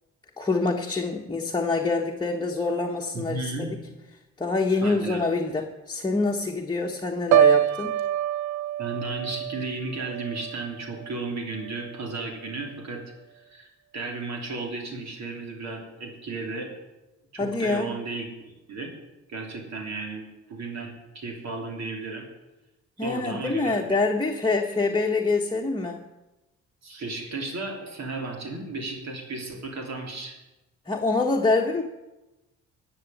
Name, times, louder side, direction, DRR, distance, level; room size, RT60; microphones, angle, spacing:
voice 1, 0.4-3.7 4.4-8.0 17.4-17.9 23.0-26.0 30.9-31.8, left 3 dB, 15° left, 0 dB, 1.3 m, -25 dB
voice 2, 3.1-3.7 4.8-5.2 8.8-13.0 13.3-16.7 17.3-18.3 18.7-18.9 19.3-22.2 23.0-24.0 26.8-30.4, right 3 dB, 60° right, 1 dB, 3.4 m, -34 dB
Piano, 7.3-11.3 11.7-12.0, right 11 dB, 80° right, 0.6 m, -25 dB
13.5 x 7.1 x 9.3 m, 1.0 s
cardioid pair, 90°, 30 cm